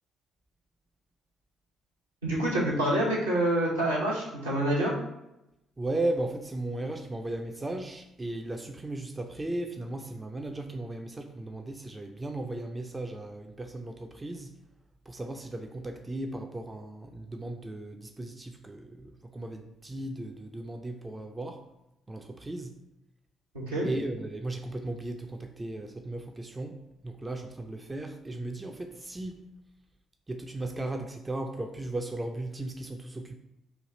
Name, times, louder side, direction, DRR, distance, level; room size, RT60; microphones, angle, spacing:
voice 1, 2.2-4.9 23.5-23.9, right 1 dB, 80° right, -6 dB, 0.8 m, -27 dB
voice 2, 5.8-14.5 15.1-21.6 22.1-22.8 23.8-29.4 30.3-33.3, right 2 dB, 20° right, 4 dB, 0.3 m, -36 dB
3.2 x 2.4 x 3.8 m, 0.89 s
figure-of-eight pair, 45°, 0 cm